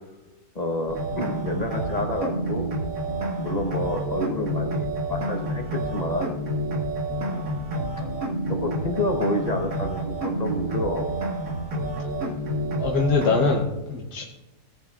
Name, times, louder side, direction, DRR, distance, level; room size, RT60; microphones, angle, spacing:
voice 1, 0.5-2.6 3.4-6.3 8.5-11.1, left 1 dB, 30° left, 3 dB, 1.0 m, -28 dB
sound 1, 0.9-13.6, right 1 dB, 55° right, 2.0 m, -29 dB
voice 2, 12.8-14.2, left 4 dB, 80° left, 1 dB, 1.5 m, -24 dB
18.0 x 8.7 x 2.4 m, 1.1 s
omnidirectional pair, 1.7 m